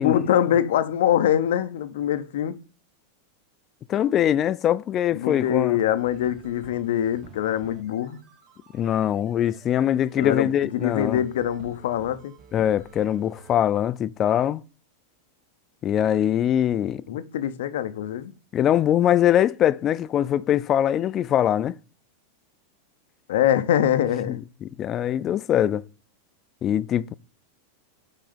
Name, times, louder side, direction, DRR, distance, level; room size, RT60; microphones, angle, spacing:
voice 1, 0.0-2.6 5.1-8.2 10.2-12.3 17.1-18.3 23.3-24.4, left 10 dB, 75° left, 0.6 m, -24 dB
voice 2, 3.9-5.8 8.7-11.2 12.5-14.6 15.8-17.0 18.5-21.7 24.3-24.4 24.6-25.8 26.6-27.1, left 10 dB, 30° left, 0.3 m, -22 dB
sound 1, 6.0-13.6, right 6 dB, 35° right, 0.9 m, -50 dB
5.8 x 4.1 x 5.0 m
supercardioid pair, 135°, 0 cm